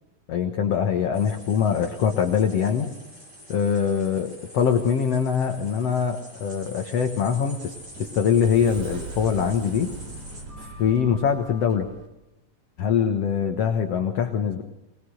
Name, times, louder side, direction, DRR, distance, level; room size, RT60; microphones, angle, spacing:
voice 1, 0.3-2.9 3.5-7.7 8.0-9.9 10.6-11.9 12.8-14.6, left 7 dB, 60° left, 6 dB, 1.7 m, -23 dB
sound 1, 1.1-10.4, equal, 10° right, 6.0 m, -46 dB
Sliding door, 7.3-12.1, right 2 dB, 55° right, 4.3 m, -39 dB
23.0 x 20.0 x 6.5 m, 0.92 s
omnidirectional pair, 4.5 m